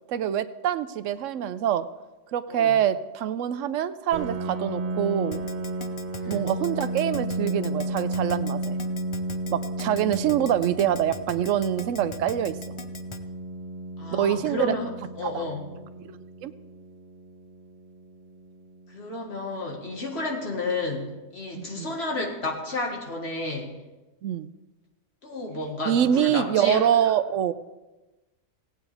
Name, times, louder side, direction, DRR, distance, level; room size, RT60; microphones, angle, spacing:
voice 1, 0.1-1.9 2.3-5.5 6.3-8.8 9.5-12.8 14.1-14.7 15.2-15.4 16.1-16.2 16.4-16.5 21.6-21.9 24.2-24.5 25.9-27.5, right 10 dB, 85° right, 13 dB, 0.9 m, -25 dB
Piano, 4.1-19.5, right 1 dB, 40° right, 0.9 m, -33 dB
Keyboard (musical), 5.3-13.2, left 4 dB, 40° left, 0.4 m, -41 dB
voice 2, 14.0-14.9 15.2-15.7 18.9-23.7 25.2-26.9, left 2 dB, 55° left, 0 dB, 2.0 m, -31 dB
17.0 x 8.8 x 3.5 m, 1.1 s
omnidirectional pair, 1.3 m